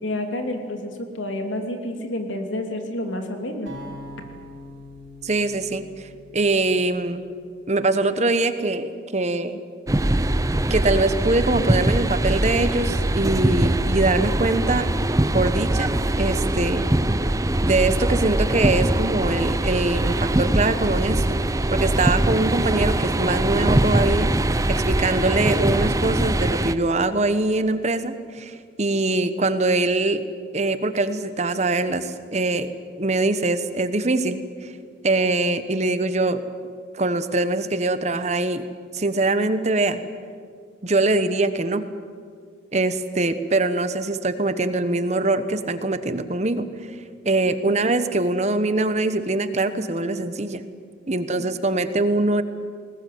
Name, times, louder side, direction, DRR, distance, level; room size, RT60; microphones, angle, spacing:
voice 1, 0.0-3.7 51.1-51.5, left 1 dB, 90° left, 4 dB, 2.9 m, -29 dB
sound 1, 3.7-7.8, left 1 dB, 75° right, 6.2 m, -43 dB
voice 2, 5.2-6.1 6.3-7.3 7.7-9.6 10.7-14.9 15.3-16.8 17.6-21.4 21.7-24.3 24.7-30.2 30.5-32.7 33.0-34.7 35.0-36.4 36.9-38.6 38.9-40.0 40.8-41.8 42.7-46.7 47.2-50.6 51.1-52.4, right 2 dB, 35° right, 11 dB, 1.1 m, -23 dB
sound 2, 9.9-26.7, right 1 dB, 15° right, 0.6 m, -22 dB
20.5 x 20.0 x 9.4 m, 2.1 s
head